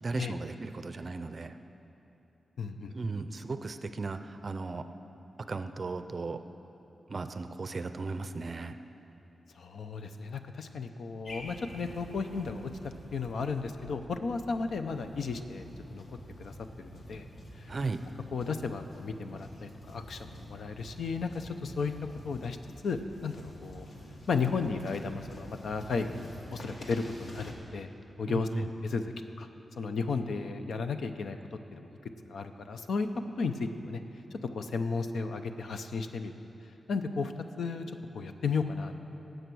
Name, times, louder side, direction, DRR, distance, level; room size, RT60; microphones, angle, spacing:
voice 1, 0.0-1.6 2.9-4.9 5.5-6.4 7.1-8.8 17.7-18.1 28.3-28.7, right 3 dB, 35° right, 10 dB, 0.5 m, -36 dB
voice 2, 2.6-2.9 9.5-12.7 13.1-17.3 17.5-17.7 18.3-21.9 22.2-22.6 22.8-23.9 24.3-27.9 28.2-29.0 29.4-29.5 29.8-31.4 31.7-32.0 32.3-33.1 33.4-34.0 34.5-36.3 36.9-37.3 37.6-37.9 38.1-38.9, left 4 dB, 70° left, 8 dB, 0.7 m, -34 dB
sound 1, 11.2-27.5, left 1 dB, 55° left, 1.7 m, -48 dB
18.0 x 8.0 x 6.2 m, 3.0 s
wide cardioid pair, 170°, 0 cm